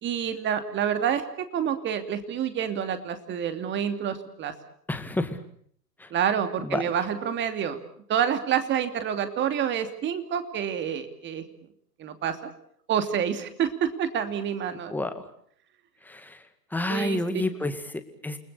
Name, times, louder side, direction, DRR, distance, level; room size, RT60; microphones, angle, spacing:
voice 1, 0.0-4.5 6.1-7.8 8.1-11.4 12.0-12.4 12.9-14.9 16.9-17.2, right 8 dB, 20° right, 9 dB, 2.8 m, -28 dB
voice 2, 4.9-5.4 6.0-6.1 6.6-6.8 14.9-15.2 16.0-16.4 16.7-18.4, left 1 dB, 5° left, 8 dB, 2.1 m, -29 dB
29.5 x 20.0 x 8.4 m, 0.65 s
hypercardioid pair, 120°, 49 cm